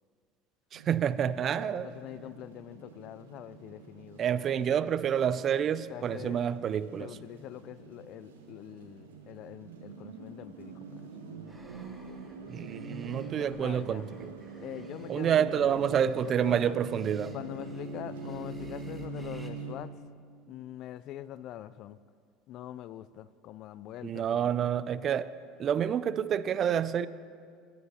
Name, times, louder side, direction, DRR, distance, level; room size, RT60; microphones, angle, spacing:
voice 1, 0.7-1.9 4.2-7.1 12.5-14.3 15.1-17.4 24.0-25.3 25.6-27.1, right 8 dB, 45° right, 16 dB, 0.4 m, -28 dB
sound 1, 0.7-19.7, right 3 dB, 85° right, 1.0 m, -44 dB
voice 2, 1.6-4.2 5.9-6.4 7.0-11.1 13.5-14.1 14.6-16.0 16.3-16.7 17.3-19.9 20.5-22.0 22.5-24.7, left 12 dB, 55° left, 17 dB, 0.3 m, -44 dB
sound 2, 11.5-19.5, right 2 dB, 10° right, 1.0 m, -57 dB
18.0 x 9.4 x 2.8 m, 2.1 s
hypercardioid pair, 75°, 0 cm